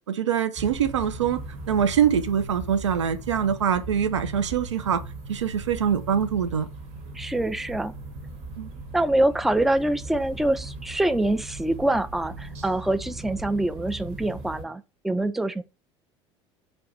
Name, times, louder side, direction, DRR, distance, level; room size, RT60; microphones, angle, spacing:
voice 1, 0.1-1.4 1.7-5.0 5.3-6.7 8.6-8.7, right 8 dB, 85° right, 0.5 m, -24 dB
sound 1, 0.6-14.6, right 2 dB, 50° right, 1.3 m, -39 dB
voice 2, 7.1-7.9 8.9-15.6, right 1 dB, ahead, 0.3 m, -25 dB
3.3 x 2.5 x 4.0 m
hypercardioid pair, 70°, 15 cm